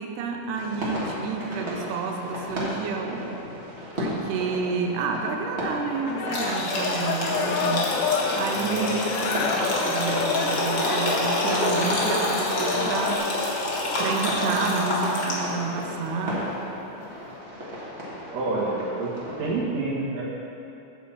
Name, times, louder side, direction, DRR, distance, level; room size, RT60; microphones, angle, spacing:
voice 1, 0.0-3.3 4.0-7.9 8.3-13.3 14.0-16.5, right 5 dB, 80° right, 2 dB, 2.2 m, -30 dB
sound 1, 0.5-19.5, left 1 dB, 45° right, 0.9 m, -35 dB
sound 2, 6.1-13.2, left 5 dB, 75° left, 1.9 m, -29 dB
sound 3, 6.3-15.6, left 1 dB, 50° left, 1.5 m, -27 dB
voice 2, 8.6-9.0 18.3-19.1 19.4-20.2, right 3 dB, 60° right, -6 dB, 2.6 m, -28 dB
8.8 x 4.2 x 7.2 m, 3.0 s
omnidirectional pair, 3.9 m